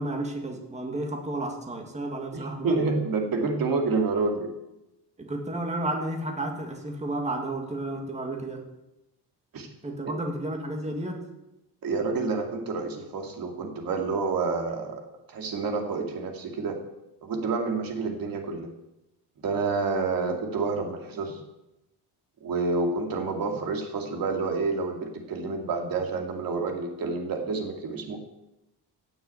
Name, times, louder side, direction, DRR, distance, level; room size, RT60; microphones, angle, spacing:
voice 1, 0.0-2.9 5.2-8.7 9.8-11.2, right 1 dB, 15° right, 2 dB, 2.0 m, -32 dB
voice 2, 2.3-4.5 9.5-9.7 11.8-15.0 15.3-16.8 17.2-18.7 19.4-21.4 22.4-28.2, right 4 dB, 50° right, 3 dB, 2.5 m, -28 dB
16.0 x 7.0 x 9.1 m, 0.92 s
cardioid pair, 170°, 43 cm